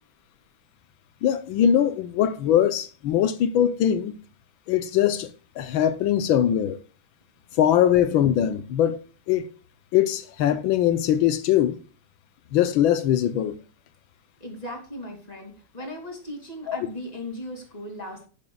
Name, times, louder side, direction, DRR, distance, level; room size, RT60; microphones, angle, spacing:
voice 1, 1.2-4.1 4.7-5.3 5.6-6.8 7.6-9.0 9.3-9.5 9.9-11.8 12.5-13.5 16.7-16.8, left 10 dB, 85° left, 1.6 m, -21 dB
voice 2, 14.4-18.3, left 1 dB, 20° left, 2.9 m, -37 dB
11.0 x 10.5 x 2.3 m
omnidirectional pair, 2.1 m